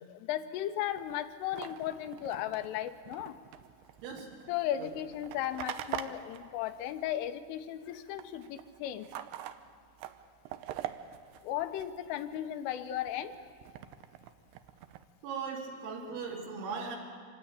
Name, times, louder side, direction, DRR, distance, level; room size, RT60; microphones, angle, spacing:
voice 1, 0.0-3.4 4.5-9.1 11.4-13.4, left 11 dB, 85° left, 8 dB, 3.4 m, -36 dB
sound 1, 0.9-7.5 7.8-12.4 12.8-15.0, right 11 dB, 90° right, 2.4 m, -45 dB
voice 2, 15.2-17.0, right 5 dB, 70° right, -1 dB, 5.4 m, -38 dB
25.5 x 19.0 x 8.7 m, 2.1 s
omnidirectional pair, 5.7 m